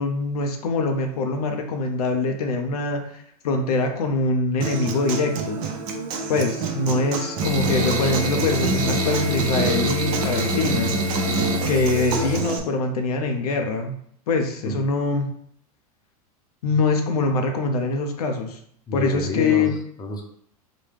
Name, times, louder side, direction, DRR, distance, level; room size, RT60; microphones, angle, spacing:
voice 1, 0.0-5.6 6.3-10.9 11.7-14.0 14.3-15.3 16.6-18.6 18.9-19.8, left 3 dB, 75° left, 4 dB, 0.6 m, -24 dB
Human voice / Acoustic guitar, 4.6-12.6, right 4 dB, 50° right, 0.7 m, -29 dB
sound 1, 7.4-12.4, equal, 80° right, 1.2 m, -25 dB
voice 2, 18.9-20.3, left 2 dB, 20° left, 2 dB, 0.7 m, -29 dB
4.0 x 2.2 x 3.3 m, 0.65 s
hypercardioid pair, 100°, 20 cm